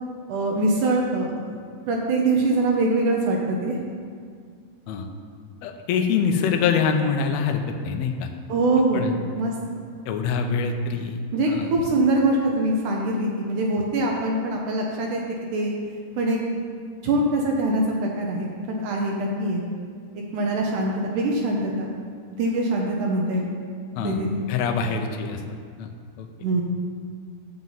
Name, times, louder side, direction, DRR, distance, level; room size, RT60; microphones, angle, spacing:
voice 1, 0.3-1.6 1.9-3.8 8.5-9.5 11.3-15.2 15.5-15.7 16.2-16.6 17.0-19.6 20.3-21.9 22.3-23.5 24.0-24.5 26.4-26.6, right 2 dB, 75° right, -1 dB, 2.2 m, -23 dB
voice 2, 5.6-8.3 8.9-9.1 10.1-11.2 11.5-11.7 24.0-24.2 24.5-25.4 25.8-25.9 26.2-26.3, left 6 dB, 80° left, 4 dB, 1.6 m, -24 dB
10.5 x 7.4 x 4.0 m, 2.1 s
omnidirectional pair, 3.7 m